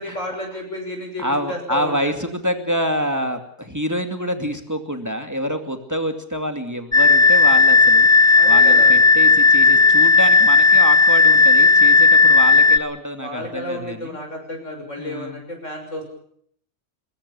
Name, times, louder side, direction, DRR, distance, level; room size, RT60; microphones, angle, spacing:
voice 1, 0.0-2.1 8.4-8.9 13.2-16.0, left 1 dB, 90° left, 3 dB, 6.5 m, -31 dB
voice 2, 1.2-14.2 15.0-15.5, equal, 15° right, 6 dB, 2.4 m, -27 dB
sound 1, 6.9-12.8, left 3 dB, 15° left, 0.8 m, -13 dB
23.0 x 21.0 x 7.0 m, 0.65 s
omnidirectional pair, 1.3 m